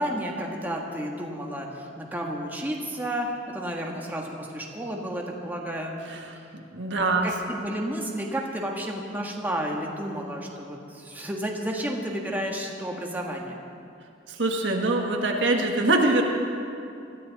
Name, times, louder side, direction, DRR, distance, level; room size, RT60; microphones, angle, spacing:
voice 1, 0.0-3.3 3.5-6.0 7.2-13.6, equal, 10° right, -1 dB, 1.5 m, -31 dB
voice 2, 6.0-6.4 6.7-7.3 14.3-16.2, right 2 dB, 75° right, 1 dB, 1.7 m, -24 dB
20.5 x 13.5 x 4.1 m, 2.6 s
head